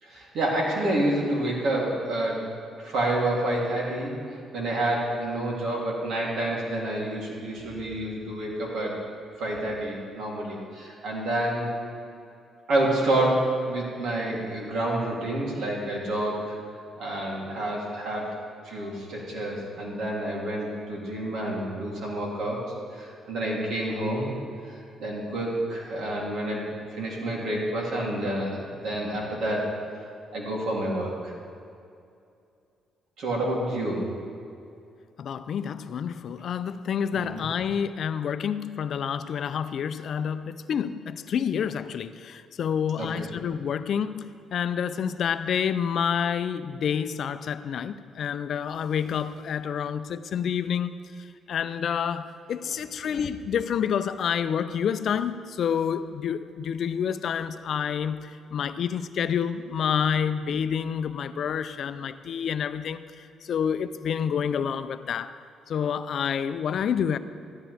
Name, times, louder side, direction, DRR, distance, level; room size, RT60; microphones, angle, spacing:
voice 1, 0.0-2.4 2.8-4.1 4.5-9.0 9.4-11.7 12.7-16.5 17.0-18.3 18.6-24.3 24.7-29.7 30.3-31.3 33.2-34.0 37.1-37.4 43.0-43.3, right 1 dB, 75° right, -3 dB, 3.0 m, -28 dB
voice 2, 35.2-50.9 51.5-63.0 63.4-65.3 65.7-67.2, left 7 dB, 65° left, 12 dB, 0.4 m, -28 dB
14.0 x 12.0 x 3.4 m, 2.5 s
cardioid pair, 90°, 0 cm